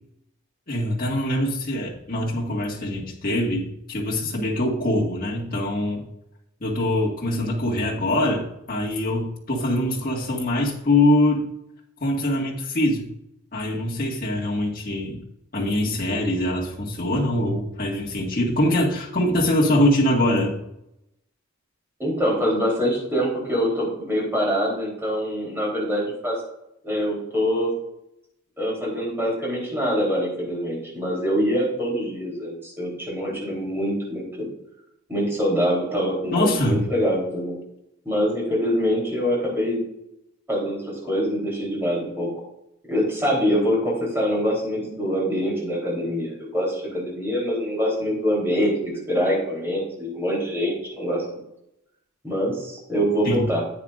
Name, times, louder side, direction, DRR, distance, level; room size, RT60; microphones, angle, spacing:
voice 1, 0.7-6.0 6.6-11.5 12.0-13.1 13.5-15.2 15.5-20.6 36.3-36.8 53.2-53.5, left 1 dB, 40° left, -3 dB, 1.8 m, -23 dB
voice 2, 22.0-26.3 26.8-27.7 28.6-34.5 35.1-37.6 38.1-39.8 40.5-42.3 42.9-51.2 52.2-53.6, equal, 10° right, -5 dB, 3.5 m, -24 dB
10.5 x 8.6 x 2.5 m, 0.83 s
head